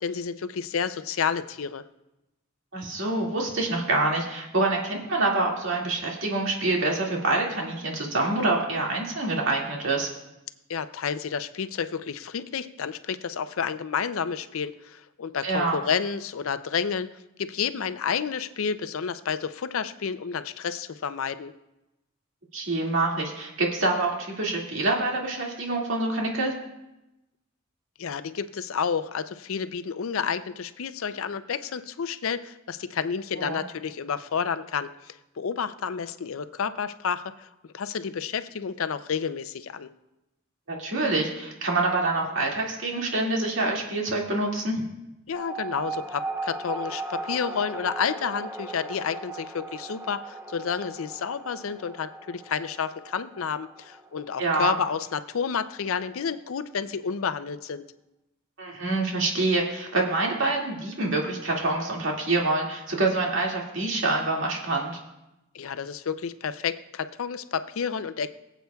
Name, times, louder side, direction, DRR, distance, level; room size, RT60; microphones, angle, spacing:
voice 1, 0.0-1.8 10.7-17.1 17.4-21.5 28.0-37.5 37.7-39.9 45.3-57.8 65.5-68.3, left 6 dB, 75° left, 12 dB, 0.5 m, -30 dB
voice 2, 2.7-10.1 15.4-15.7 22.5-26.5 33.4-33.6 40.7-44.9 54.4-54.7 58.6-65.0, right 2 dB, 65° right, -1 dB, 2.2 m, -26 dB
sound 1, 45.3-56.3, right 3 dB, 10° right, 0.7 m, -38 dB
22.0 x 8.0 x 2.3 m, 0.94 s
head